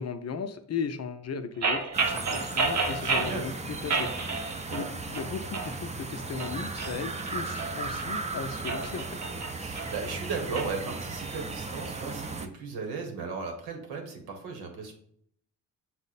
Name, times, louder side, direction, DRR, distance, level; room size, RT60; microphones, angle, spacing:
voice 1, 0.0-4.1 4.7-9.1, left 6 dB, 40° left, 9 dB, 0.5 m, -36 dB
sound 1, 1.6-3.4 3.9-4.9 5.1-5.7 6.2-8.1 8.5-10.7, right 4 dB, 45° right, 0.8 m, -30 dB
sound 2, 1.9-12.5, right 3 dB, 20° right, 0.5 m, -36 dB
voice 2, 2.9-3.5 4.7-4.9 9.6-14.9, right 4 dB, 75° right, 3 dB, 1.2 m, -36 dB
6.1 x 2.0 x 4.0 m, 0.65 s
supercardioid pair, 60°, 38 cm